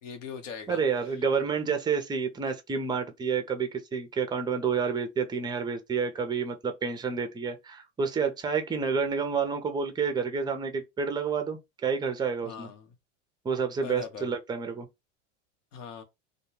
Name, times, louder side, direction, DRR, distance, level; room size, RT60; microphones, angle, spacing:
voice 1, 0.0-0.8 12.4-12.9 13.8-14.3 15.7-16.0, left 6 dB, 80° left, 1.0 m, -40 dB
voice 2, 0.7-12.7 13.4-14.9, right 5 dB, 10° right, 0.4 m, -29 dB
2.2 x 2.2 x 3.0 m
hypercardioid pair, 105°, 37 cm